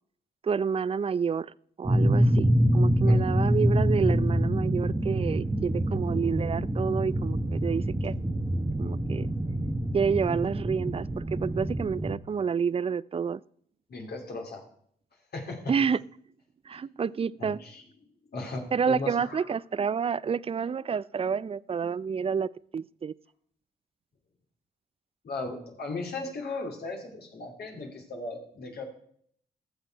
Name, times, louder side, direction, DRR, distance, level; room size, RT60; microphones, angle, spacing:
voice 1, 0.4-8.1 8.8-9.3 9.9-13.4 15.7-16.0 16.7-17.6 18.7-23.1, right 6 dB, 35° right, 20 dB, 0.4 m, -29 dB
sound 1, 1.8-12.2, equal, 15° right, 1.0 m, -26 dB
voice 2, 13.9-14.6 15.3-15.7 17.4-17.8 18.3-19.5 25.2-28.8, left 3 dB, 65° left, 1 dB, 2.8 m, -37 dB
14.5 x 6.6 x 4.6 m, 0.63 s
supercardioid pair, 50°, 18 cm